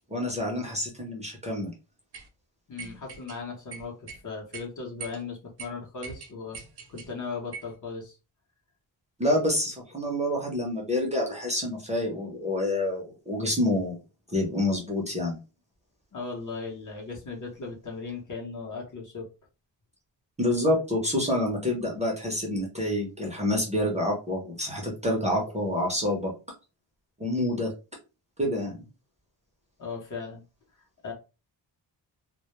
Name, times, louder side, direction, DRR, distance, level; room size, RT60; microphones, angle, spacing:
voice 1, 0.1-1.7 9.2-14.0 14.3-15.4 20.4-26.3 27.2-27.7 28.4-28.8, left 1 dB, 15° right, -1 dB, 0.6 m, -27 dB
sound 1, 2.1-2.3 2.8-3.4 3.7-4.2 4.5-4.7 5.0-5.2 5.6-5.7 6.0-7.1 7.5-7.8, right 5 dB, 65° right, 0.6 m, -42 dB
voice 2, 2.7-6.6 6.9-8.2 16.1-19.3 29.8-30.4 31.0-31.1, left 4 dB, 45° left, 0 dB, 0.7 m, -37 dB
2.2 x 2.0 x 2.9 m, 0.30 s
wide cardioid pair, 160°, 43 cm